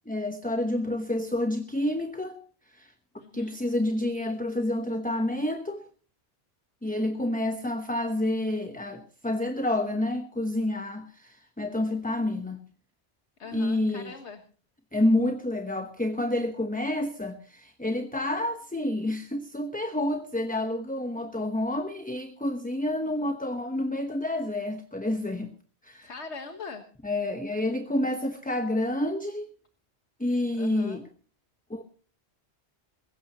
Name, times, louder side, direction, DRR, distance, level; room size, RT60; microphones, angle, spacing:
voice 1, 0.1-2.4 2.7-2.9 3.3-5.8 6.8-12.6 13.5-14.1 14.9-25.5 25.8-26.1 27.0-29.5 30.2-31.1 31.7-31.8, left 1 dB, 10° left, 7 dB, 0.9 m, -29 dB
voice 2, 3.2-3.6 13.4-14.4 26.0-26.8 30.6-31.1, left 4 dB, 85° left, 5 dB, 1.7 m, -41 dB
21.0 x 16.5 x 2.9 m, 0.41 s
omnidirectional pair, 1.1 m